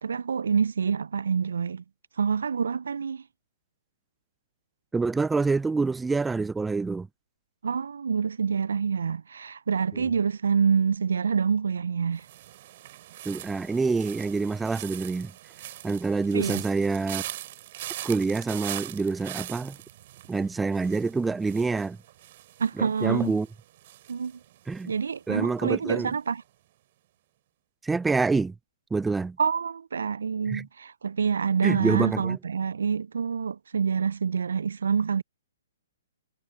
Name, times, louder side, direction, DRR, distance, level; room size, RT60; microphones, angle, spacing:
voice 1, 0.0-1.8 2.2-3.2 7.6-12.3 16.3-16.6 22.6-23.4 24.1-24.4 24.9-26.4 29.4-35.2, right 6 dB, 70° right, 0.4 m, -27 dB
voice 2, 4.9-7.1 9.9-10.1 13.2-15.3 15.8-17.2 18.0-19.8 20.3-22.0 22.8-23.5 24.7-24.9 25.3-26.1 27.8-28.5 28.9-29.4 30.5-30.7 31.6-32.4, right 4 dB, 10° right, 0.6 m, -26 dB
sound 1, 12.2-25.2 25.5-25.9, right 14 dB, 45° right, 3.1 m, -42 dB
figure-of-eight pair, 125°, 0 cm